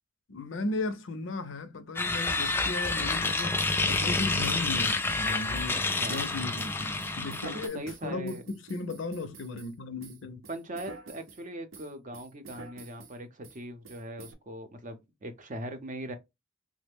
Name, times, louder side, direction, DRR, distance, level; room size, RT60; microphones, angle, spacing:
voice 1, 0.3-5.8 6.1-10.4, left 3 dB, 70° left, 0.6 m, -36 dB
sound 1, 2.0-7.7, left 3 dB, 10° left, 0.3 m, -29 dB
sound 2, 3.2-9.7 10.0-11.4 11.7-13.2 13.4-13.6 13.8-14.3, right 4 dB, 80° right, 0.7 m, -48 dB
voice 2, 5.7-6.2 7.4-8.4 10.5-16.1, right 1 dB, 40° right, 0.6 m, -40 dB
3.2 x 2.1 x 3.4 m
head